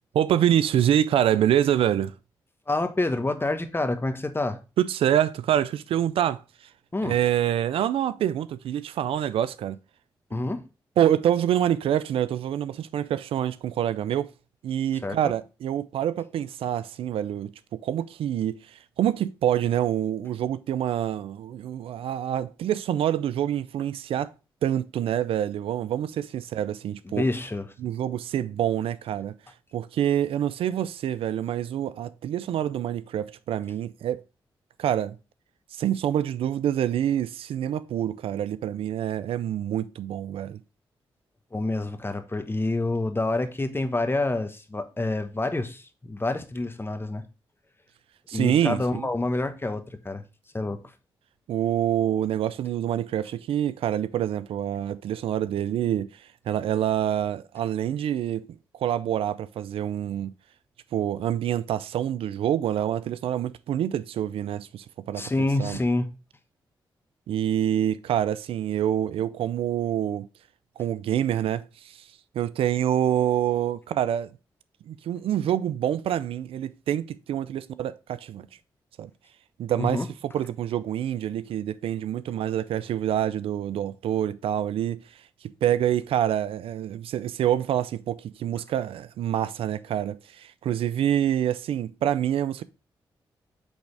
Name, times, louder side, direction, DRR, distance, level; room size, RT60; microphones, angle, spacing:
voice 1, 0.1-2.1 4.8-6.4 7.0-9.8 11.0-14.3 14.6-24.3 24.6-27.2 27.8-29.3 29.7-34.2 34.8-35.2 35.7-40.6 48.3-49.1 51.5-60.3 60.9-65.3 65.6-65.8 67.3-70.3 70.8-72.1 72.3-74.3 74.9-78.5 79.0-79.1 79.6-80.1 80.3-92.6, right 10 dB, 80° right, 0.4 m, -26 dB
voice 2, 2.7-4.6 6.9-7.1 10.3-10.6 15.0-15.3 27.1-27.7 41.5-47.2 48.3-50.2 50.5-50.8 65.2-66.1 79.8-80.1, left 2 dB, 25° left, 1.1 m, -27 dB
8.2 x 3.5 x 3.2 m
supercardioid pair, 50°, 9 cm